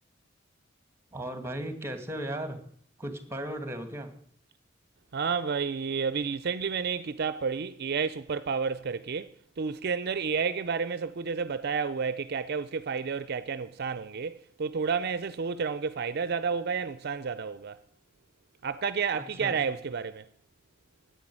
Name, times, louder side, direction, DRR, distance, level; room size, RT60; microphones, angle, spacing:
voice 1, 1.1-2.6 3.0-4.1 19.1-19.8, right 1 dB, 15° right, 1.9 m, -36 dB
voice 2, 5.1-9.3 9.6-17.8 18.6-20.3, right 5 dB, 55° right, 0.5 m, -31 dB
10.5 x 9.3 x 9.9 m
head